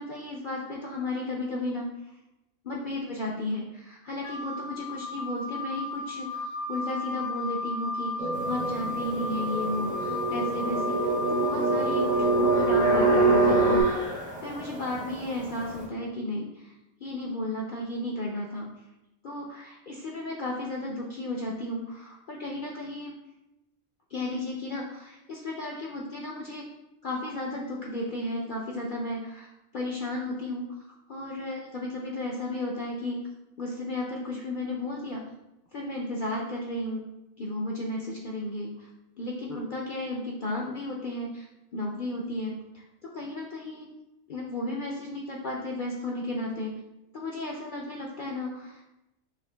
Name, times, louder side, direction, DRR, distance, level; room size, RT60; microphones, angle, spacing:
voice 1, 0.0-1.9 2.6-11.0 11.3-14.1 14.4-16.7 17.0-18.7 19.2-23.1 24.1-26.7 27.0-29.5 29.7-30.6 31.1-33.2 33.6-35.2 35.7-37.0 37.4-38.9 39.2-41.5 41.7-42.8 43.1-43.9 44.3-46.7 47.1-48.8, left 1 dB, 60° left, -1 dB, 0.5 m, -34 dB
Wind instrument woodwind instrument, 4.2-13.9, left 3 dB, 75° left, 0.9 m, -34 dB
sound 1, 8.2-13.8, right 3 dB, 75° right, 0.3 m, -25 dB
sound 2, 8.3-15.9, equal, 10° right, 0.4 m, -39 dB
6.1 x 3.0 x 2.2 m, 0.91 s
omnidirectional pair, 1.4 m